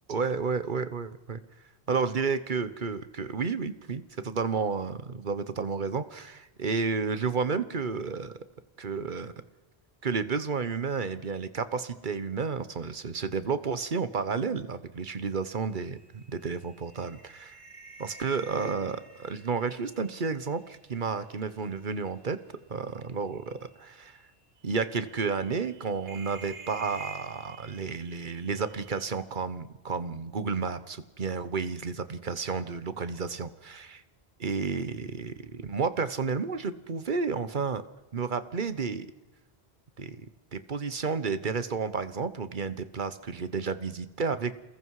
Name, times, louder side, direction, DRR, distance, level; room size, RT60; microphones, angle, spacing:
voice 1, 0.1-1.4 1.9-8.3 8.8-9.3 10.0-17.5 18.0-22.4 22.7-24.2 24.6-34.0 34.4-37.8 38.1-39.1 40.0-40.2 40.5-44.6, right 5 dB, 50° right, 13 dB, 1.2 m, -31 dB
sound 1, 15.3-21.5 21.8-22.3 23.4-23.6 24.0-24.1 25.0-29.1, right 3 dB, 65° right, 2.7 m, -49 dB
28.5 x 20.5 x 4.8 m, 1.1 s
omnidirectional pair, 1.1 m